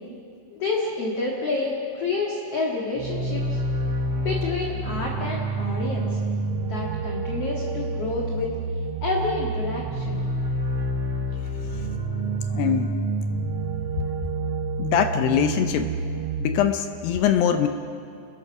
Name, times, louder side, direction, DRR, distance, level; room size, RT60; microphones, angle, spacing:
voice 1, 0.6-3.6 4.1-6.2 6.6-8.5 9.0-10.3, left 3 dB, 45° left, -1 dB, 2.2 m, -29 dB
sound 1, 3.0-16.6, right 2 dB, 75° right, 1.3 m, -28 dB
voice 2, 12.5-13.0 14.8-15.9 16.4-17.7, left 9 dB, 75° left, 8 dB, 2.6 m, -22 dB
29.0 x 20.5 x 6.1 m, 2.5 s
omnidirectional pair, 5.2 m